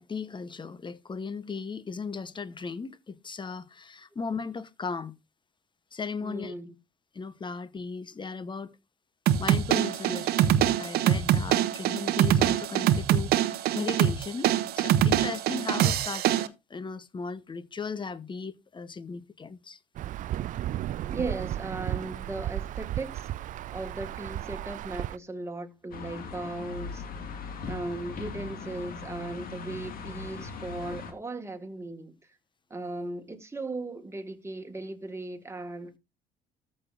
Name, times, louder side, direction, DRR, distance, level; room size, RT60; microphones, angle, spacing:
voice 1, 0.0-5.2 5.9-6.5 7.1-8.7 9.4-19.8, left 5 dB, 25° left, 1.0 m, -37 dB
voice 2, 6.2-6.7 21.1-23.3 23.7-27.0 27.7-32.2 32.7-36.0, right 2 dB, 15° right, 1.9 m, -37 dB
sound 1, 9.3-16.5, right 11 dB, 65° right, 0.9 m, -24 dB
Insect / Thunder / Rain, 20.0-25.2, right 13 dB, 50° right, 0.4 m, -34 dB
sound 2, 25.9-31.1, left 4 dB, 55° left, 2.1 m, -39 dB
14.0 x 6.5 x 2.6 m
hypercardioid pair, 60°, 17 cm